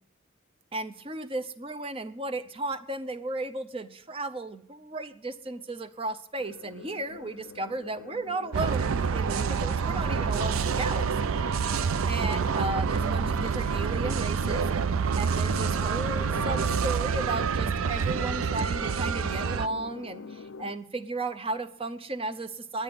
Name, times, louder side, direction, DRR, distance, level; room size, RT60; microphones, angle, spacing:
voice 1, 0.7-11.7 12.1-22.8, right 2 dB, 25° right, 10 dB, 0.6 m, -35 dB
sound 1, 6.4-20.7, left 5 dB, 70° left, 0.4 m, -44 dB
sound 2, 8.5-19.7, right 6 dB, 80° right, 0.5 m, -27 dB
11.0 x 9.9 x 7.7 m, 0.70 s
head